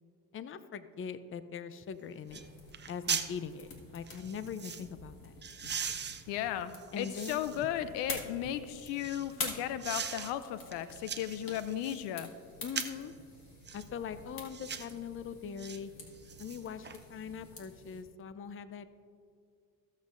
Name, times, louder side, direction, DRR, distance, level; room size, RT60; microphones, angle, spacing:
voice 1, 0.3-2.4 2.9-5.3 6.9-7.5 12.6-13.1 13.7-15.9 16.4-18.9, left 7 dB, 30° left, 13 dB, 0.6 m, -41 dB
sound 1, 1.8-1.9 2.3-2.5 2.7-3.3 4.1-4.9 5.4-7.7 8.2-9.3 9.8-10.3 10.7-12.0 12.6-13.1 13.6-13.9 14.5-14.9 15.6-15.8 16.1-17.0 17.3-17.4, right 7 dB, 25° right, 0.6 m, -39 dB
sound 2, 2.3-18.0, left 3 dB, 55° left, 2.0 m, -47 dB
voice 2, 6.3-12.3, left 11 dB, 75° left, 13 dB, 0.6 m, -35 dB
15.5 x 7.4 x 2.6 m, 2.4 s
supercardioid pair, 65°, 43 cm